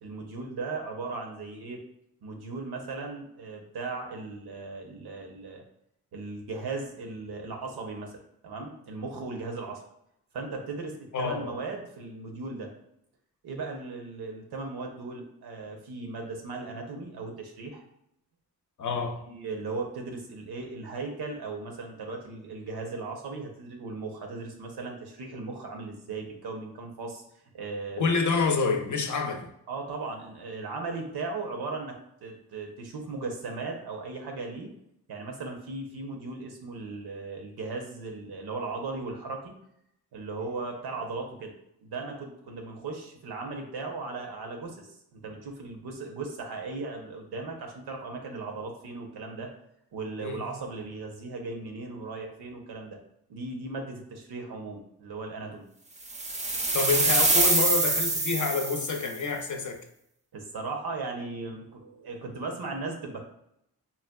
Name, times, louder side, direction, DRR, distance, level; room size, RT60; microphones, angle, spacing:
voice 1, 0.0-1.8 2.2-5.6 6.1-8.1 8.4-9.8 10.3-12.7 13.4-17.8 19.3-27.2 27.5-28.2 29.7-34.7 35.1-39.5 40.1-41.5 41.8-49.5 49.9-53.0 53.3-55.7 60.3-63.2, right 3 dB, 80° right, 0.7 m, -37 dB
voice 2, 11.1-11.6 18.8-19.2 28.0-29.5 50.2-50.5 56.7-59.9, left 4 dB, 50° left, 0.6 m, -28 dB
sound 1, 56.1-59.1, right 2 dB, 20° right, 0.5 m, -25 dB
3.9 x 2.2 x 2.2 m
cardioid pair, 50°, 39 cm